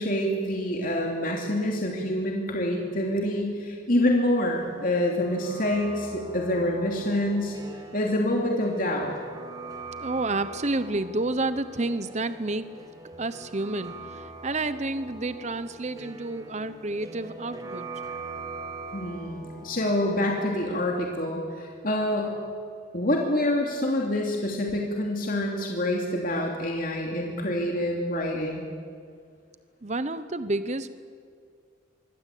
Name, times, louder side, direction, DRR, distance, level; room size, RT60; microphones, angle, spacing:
voice 1, 0.0-7.5 7.9-9.1 18.9-22.3 22.9-28.7, left 1 dB, 40° left, -1 dB, 3.0 m, -26 dB
sound 1, 4.3-20.6, right 3 dB, 20° right, 1.8 m, -42 dB
voice 2, 10.0-12.7 13.2-17.9 29.8-30.9, right 2 dB, 35° right, 12 dB, 0.8 m, -30 dB
25.0 x 23.0 x 8.5 m, 2.1 s
head